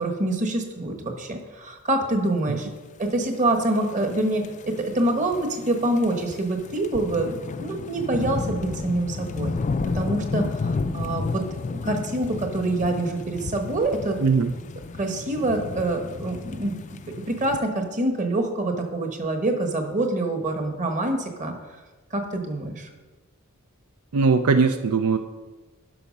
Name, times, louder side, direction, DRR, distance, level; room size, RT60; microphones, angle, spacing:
voice 1, 0.0-2.7 3.0-9.5 9.9-11.4 11.7-14.2 15.0-16.8 17.3-21.5 22.1-22.9, right 2 dB, 35° right, 4 dB, 1.3 m, -26 dB
sound 1, 3.3-17.6, left 3 dB, 35° left, 0.4 m, -32 dB
voice 2, 14.2-14.5 24.1-25.2, right 4 dB, 80° right, 8 dB, 0.5 m, -20 dB
11.5 x 5.9 x 5.3 m, 1.2 s
head